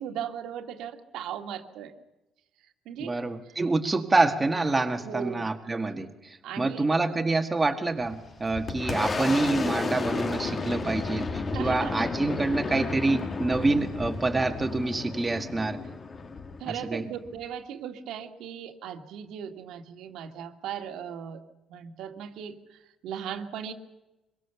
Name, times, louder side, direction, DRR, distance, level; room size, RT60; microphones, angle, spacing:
voice 1, 0.0-1.9 2.6-3.2 3.5-3.6 5.0-5.5 6.4-6.9 11.5-11.9 16.6-21.4 21.7-23.7, right 9 dB, 75° right, 5 dB, 2.1 m, -38 dB
voice 2, 3.0-15.8 16.7-17.1, right 3 dB, 15° right, 4 dB, 1.7 m, -27 dB
Boom, 8.0-17.4, left 4 dB, 25° left, 1.7 m, -32 dB
24.5 x 22.5 x 7.0 m, 1.0 s
cardioid pair, 140°, 0 cm